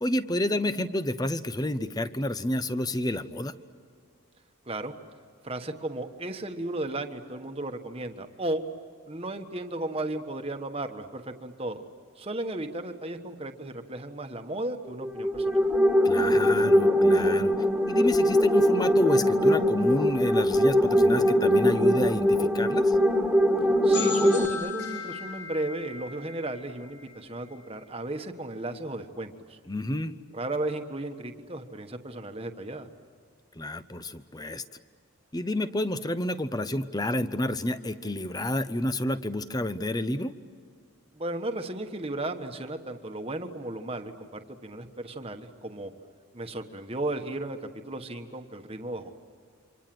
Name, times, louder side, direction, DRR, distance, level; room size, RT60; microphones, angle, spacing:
voice 1, 0.0-3.5 16.0-17.5 17.9-23.0 29.7-30.1 33.5-34.6 35.3-40.3, left 1 dB, 20° left, 12 dB, 0.8 m, -29 dB
voice 2, 5.4-8.6 9.0-11.8 12.2-15.6 23.8-29.6 30.3-32.9 41.1-45.9 46.3-49.1, right 2 dB, 25° right, 6 dB, 1.4 m, -35 dB
sound 1, 15.0-24.5, equal, ahead, 2.0 m, -22 dB
sound 2, 23.9-27.6, left 6 dB, 60° left, 7.1 m, -37 dB
28.5 x 25.5 x 7.8 m, 2.1 s
head